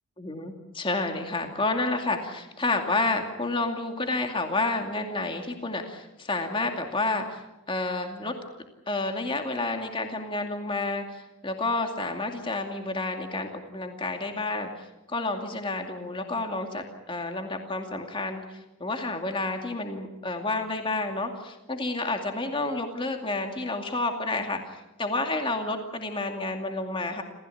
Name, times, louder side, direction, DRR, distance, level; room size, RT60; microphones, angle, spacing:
voice 1, 0.2-8.4 8.9-27.2, left 2 dB, 25° left, 4 dB, 2.4 m, -30 dB
28.0 x 15.5 x 8.5 m, 1.0 s
head